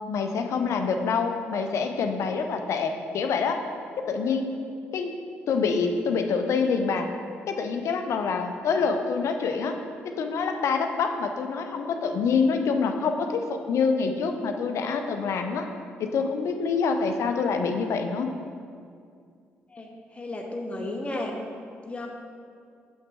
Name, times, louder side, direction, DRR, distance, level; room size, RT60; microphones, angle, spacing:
voice 1, 0.1-3.6 4.0-4.5 4.9-5.2 5.5-7.1 7.5-9.8 10.1-15.7 16.0-18.3, left 5 dB, 50° left, 5 dB, 0.5 m, -26 dB
voice 2, 19.7-21.3 21.8-22.1, left 2 dB, 20° left, 0 dB, 0.8 m, -34 dB
7.3 x 5.7 x 3.4 m, 2.3 s
figure-of-eight pair, 40°, 6 cm